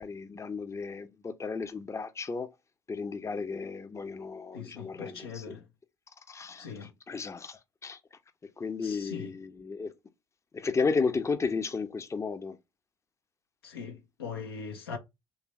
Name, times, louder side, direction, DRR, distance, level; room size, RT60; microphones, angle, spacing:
voice 1, 0.0-2.5 2.9-5.6 6.3-8.0 8.6-9.9 10.5-12.6, left 4 dB, 25° left, 0.5 m, -33 dB
voice 2, 4.5-5.7 6.6-6.9 8.8-9.3 13.6-15.0, left 6 dB, 90° left, 0.6 m, -41 dB
3.2 x 2.5 x 3.0 m
hypercardioid pair, 50°, 12 cm